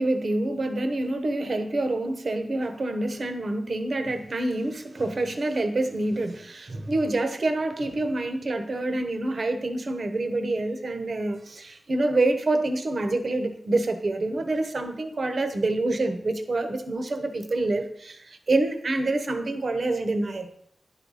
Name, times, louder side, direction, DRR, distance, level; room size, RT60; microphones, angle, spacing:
voice 1, 0.0-20.5, right 2 dB, 50° right, 7 dB, 0.9 m, -27 dB
10.5 x 4.0 x 4.8 m, 0.70 s
wide cardioid pair, 120°, 0 cm